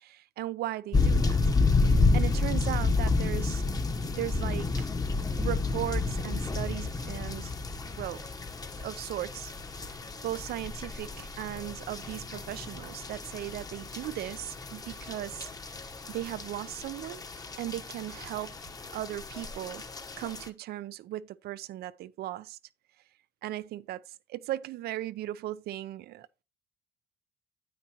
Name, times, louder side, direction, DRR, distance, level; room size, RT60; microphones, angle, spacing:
voice 1, 0.0-1.4 1.9-3.6 4.1-4.9 5.4-7.5 8.0-8.2 8.8-9.5 9.8-15.5 16.1-17.2 17.6-18.6 18.9-19.8 20.2-22.6 23.4-24.0 24.3-26.4, right 14 dB, 70° right, 0.5 m, -37 dB
sound 1, 0.9-20.5, left 3 dB, 20° left, 1.0 m, -30 dB
9.3 x 8.9 x 2.9 m
cardioid pair, 110°, 17 cm